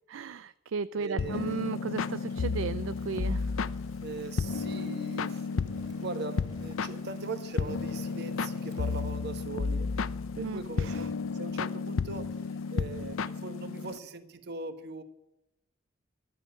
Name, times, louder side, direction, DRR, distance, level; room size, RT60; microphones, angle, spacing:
voice 1, 0.1-3.5 10.4-11.0, right 5 dB, 70° right, 15 dB, 0.4 m, -35 dB
voice 2, 1.0-1.6 4.0-10.1 10.4-12.3 12.7-15.0, right 3 dB, 55° right, 9 dB, 1.3 m, -40 dB
sound 1, 1.2-14.0, left 4 dB, 80° left, 0.5 m, -33 dB
Fire, 2.0-9.2, right 2 dB, 20° right, 3.0 m, -58 dB
13.0 x 7.7 x 9.8 m, 0.92 s
head